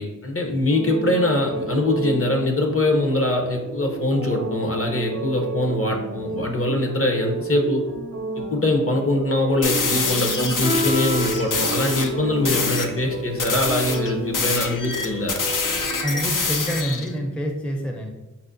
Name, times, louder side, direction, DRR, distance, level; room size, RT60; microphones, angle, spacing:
voice 1, 0.0-7.8 8.4-15.4, left 1 dB, 45° left, 2 dB, 0.7 m, -23 dB
sound 1, 0.7-16.2, right 3 dB, 50° right, 0.5 m, -32 dB
sound 2, 9.6-12.1 12.4-12.9 13.4-17.1, left 4 dB, 90° left, 0.5 m, -25 dB
Guitar, 10.6-16.3, equal, 70° left, 1.0 m, -32 dB
voice 2, 16.0-18.1, equal, 5° left, 2 dB, 0.4 m, -27 dB
5.5 x 2.1 x 2.5 m, 1.1 s
wide cardioid pair, 40°, 31 cm